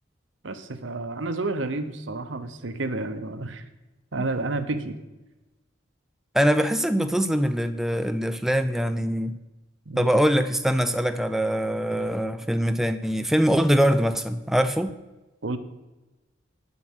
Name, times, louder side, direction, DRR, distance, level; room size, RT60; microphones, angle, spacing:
voice 1, 0.4-3.6 4.1-5.0 9.9-10.1 15.4-15.6, right 2 dB, 80° right, 9 dB, 1.0 m, -30 dB
voice 2, 6.3-9.4 10.0-14.9, equal, ahead, 9 dB, 0.4 m, -23 dB
9.9 x 7.0 x 6.3 m, 1.1 s
head